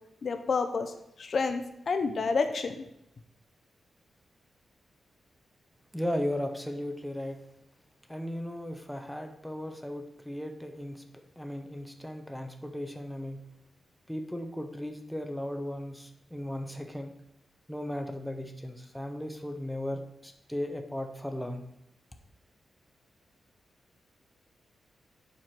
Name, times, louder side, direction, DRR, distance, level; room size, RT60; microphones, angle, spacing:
voice 1, 0.2-0.9 1.2-2.8, left 4 dB, 45° left, 8 dB, 0.6 m, -29 dB
voice 2, 5.9-7.4 8.1-11.0 11.4-13.4 14.1-17.1 17.7-21.6, left 1 dB, ahead, 5 dB, 0.7 m, -36 dB
7.4 x 4.8 x 5.9 m, 0.80 s
wide cardioid pair, 175°, 0 cm